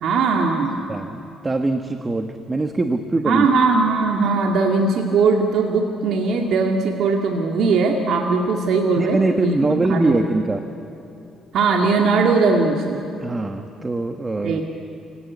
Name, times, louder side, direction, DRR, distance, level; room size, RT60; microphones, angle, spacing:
voice 1, 0.0-0.8 3.3-9.5 9.9-10.2 11.5-13.0 14.4-14.6, right 4 dB, 70° right, 1 dB, 2.2 m, -19 dB
voice 2, 0.8-3.5 9.0-10.6 13.2-14.6, right 2 dB, 20° right, 6 dB, 1.3 m, -23 dB
28.0 x 18.0 x 9.6 m, 2.9 s
cardioid pair, 95°, 0 cm